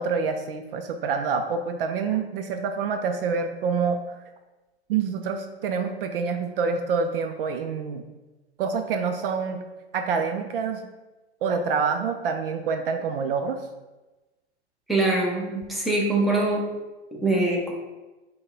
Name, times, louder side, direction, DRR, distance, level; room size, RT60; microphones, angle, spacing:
voice 1, 0.0-4.0 4.9-8.0 8.6-9.6 9.9-10.8 11.4-13.6, right 5 dB, 60° right, 6 dB, 0.5 m, -27 dB
voice 2, 14.9-16.7 17.1-17.7, right 2 dB, ahead, -3 dB, 0.7 m, -23 dB
5.2 x 2.2 x 3.8 m, 1.1 s
hypercardioid pair, 110°, 33 cm